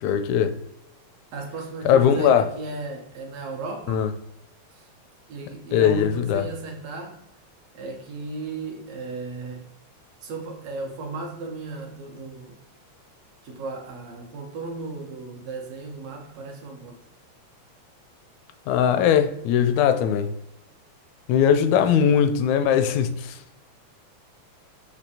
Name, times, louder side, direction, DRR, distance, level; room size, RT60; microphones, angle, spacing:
voice 1, 0.0-0.5 1.8-2.5 3.9-4.1 5.7-6.4 18.7-20.3 21.3-23.4, left 8 dB, 80° left, 1.8 m, -20 dB
voice 2, 1.3-4.1 4.7-4.9 5.3-7.2 7.7-9.7 10.2-12.6 13.4-17.0 21.8-22.1, right 3 dB, 70° right, 2.0 m, -35 dB
6.0 x 2.9 x 2.8 m
omnidirectional pair, 3.3 m